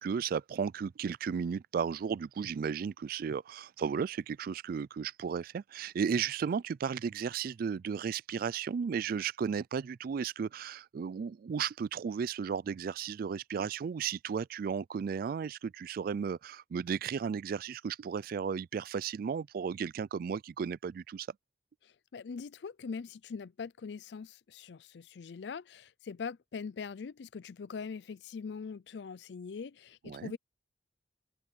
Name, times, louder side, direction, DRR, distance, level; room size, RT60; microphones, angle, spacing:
voice 1, 0.0-21.3 30.1-30.3, right 6 dB, 55° right, 0.3 m, -34 dB
voice 2, 21.8-30.4, left 5 dB, 70° left, 0.4 m, -42 dB
open air
head